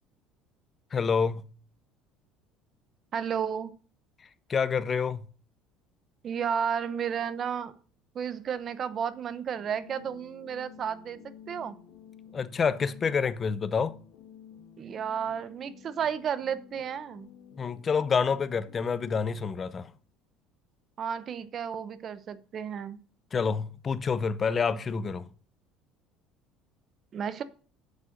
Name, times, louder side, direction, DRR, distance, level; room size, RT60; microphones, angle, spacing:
voice 1, 0.9-1.4 4.5-5.2 12.3-13.9 17.6-19.9 23.3-25.3, left 5 dB, 25° left, 0.6 m, -28 dB
voice 2, 3.1-3.7 6.2-7.7 8.1-11.8 14.8-17.3 21.0-23.0 27.1-27.4, right 7 dB, 35° right, 0.8 m, -32 dB
sound 1, 9.5-19.2, left 8 dB, 90° left, 1.5 m, -52 dB
7.4 x 6.3 x 6.5 m
cardioid pair, 145°, 0 cm